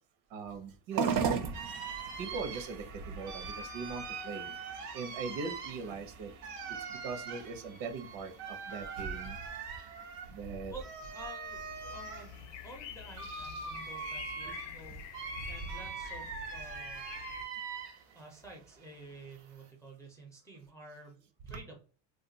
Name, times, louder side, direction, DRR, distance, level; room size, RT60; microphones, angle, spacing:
voice 1, 0.3-1.1 1.5-1.6 2.2-4.5 4.9-6.3 6.9-8.3 8.7-9.4 10.3-10.7 21.5-21.6, right 4 dB, 65° right, 6 dB, 0.9 m, -40 dB
sound 1, 0.9-19.5, right 6 dB, 45° right, 0.6 m, -43 dB
sound 2, 1.5-18.2 18.5-19.7, right 5 dB, 85° right, 1.1 m, -43 dB
voice 2, 10.7-11.6 11.9-17.0 18.1-21.8, right 2 dB, 5° left, -1 dB, 0.5 m, -50 dB
sound 3, 11.5-17.4, left 8 dB, 60° left, 0.5 m, -47 dB
2.5 x 2.3 x 3.9 m, 0.38 s
cardioid pair, 140°, 50 cm